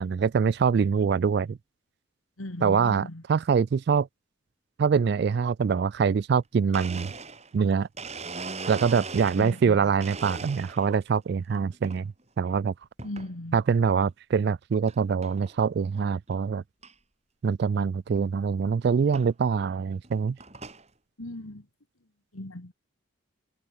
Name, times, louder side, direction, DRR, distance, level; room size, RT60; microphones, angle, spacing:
voice 1, 0.0-1.6 2.6-3.0 3.3-4.1 4.8-7.1 7.5-7.9 8.7-12.7 13.5-16.6 17.4-20.4, right 6 dB, 50° right, 0.3 m, -24 dB
voice 2, 2.4-3.2 9.4-9.9 13.0-13.6 21.2-21.7 22.3-22.7, left 1 dB, 85° left, 2.3 m, -37 dB
Domestic sounds home sounds, 6.7-9.7 10.0-11.0 11.5-12.0 13.0-13.3 13.9-14.0 14.9-15.0 15.2-15.6 16.0-16.1 16.3-16.4 16.8-16.9 18.2-18.3 19.1-19.3 19.9-20.9, right 4 dB, 30° right, 7.0 m, -39 dB
head